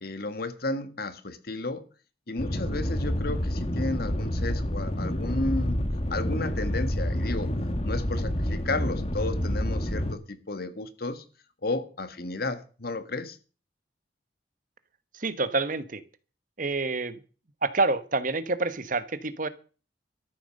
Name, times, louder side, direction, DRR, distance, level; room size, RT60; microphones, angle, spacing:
voice 1, 0.0-1.8 2.3-5.8 6.1-7.5 7.8-11.2 11.6-13.4, left 2 dB, 60° left, 10 dB, 1.8 m, -33 dB
sound 1, 2.4-10.1, left 1 dB, 35° left, 1.5 m, -28 dB
voice 2, 15.1-16.0 16.6-17.2 17.6-19.5, right 3 dB, 50° right, 13 dB, 1.2 m, -27 dB
13.5 x 9.3 x 6.5 m, 0.37 s
head